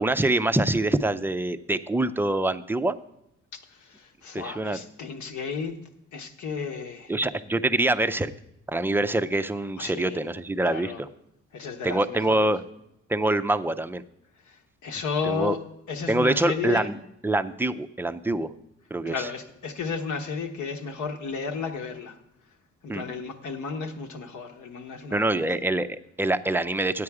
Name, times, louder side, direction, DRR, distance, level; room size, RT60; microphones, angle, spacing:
voice 1, 0.0-3.0 4.3-4.8 7.1-8.3 8.7-11.1 11.8-12.6 13.1-14.0 15.2-15.6 16.1-18.5 18.9-19.3 22.9-23.0 25.1-27.0, right 2 dB, 5° right, 11 dB, 0.4 m, -25 dB
voice 2, 3.5-5.8 6.1-7.1 9.8-10.2 10.7-11.0 11.5-12.5 14.5-15.6 15.9-16.9 19.1-22.2 22.8-25.5, left 5 dB, 70° left, 5 dB, 1.2 m, -33 dB
9.6 x 8.6 x 4.8 m, 0.80 s
cardioid pair, 90°, 30 cm